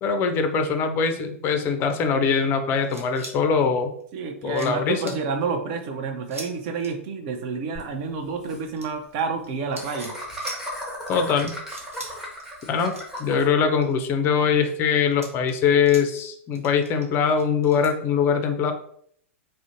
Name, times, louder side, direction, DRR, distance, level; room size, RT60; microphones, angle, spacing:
voice 1, 0.0-3.9 4.4-5.2 11.1-11.5 12.7-12.9 13.2-18.7, left 6 dB, 30° left, 7 dB, 0.4 m, -22 dB
sound 1, 2.8-3.3 4.0-4.1 4.5-4.7 5.1-5.2 6.3-6.5 6.8-6.9 8.8-9.5 9.7-10.1 10.4-10.6 11.1-11.2 11.4-12.1 12.4-12.6 12.9-13.9 14.4-14.7 15.1-16.3 16.5-17.9, right 2 dB, 85° right, 0.6 m, -40 dB
voice 2, 4.1-10.1, right 5 dB, 45° right, 6 dB, 0.5 m, -29 dB
Laughter, 7.7-7.8 8.1-8.2 8.4-8.6 9.8-13.5, equal, 5° right, 0.8 m, -35 dB
2.5 x 2.1 x 2.7 m, 0.64 s
hypercardioid pair, 110°, 7 cm